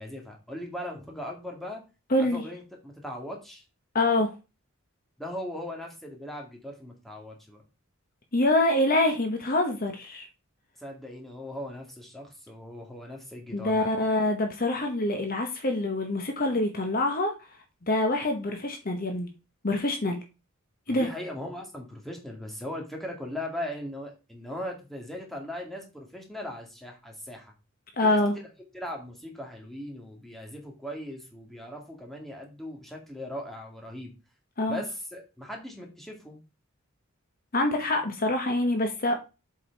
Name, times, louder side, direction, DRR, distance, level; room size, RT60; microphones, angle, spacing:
voice 1, 0.0-1.8 2.3-3.6 5.2-7.6 10.8-13.9 20.9-27.5 28.0-28.5 28.7-34.1 34.7-36.4, left 1 dB, ahead, 0 dB, 2.2 m, -39 dB
voice 2, 2.1-2.4 3.9-4.3 8.3-10.3 13.5-17.3 17.9-19.3 19.6-20.2 20.9-21.1 28.0-28.3 34.6-34.8 37.5-39.2, left 2 dB, 45° left, 5 dB, 1.2 m, -25 dB
7.6 x 4.9 x 4.6 m, 0.29 s
head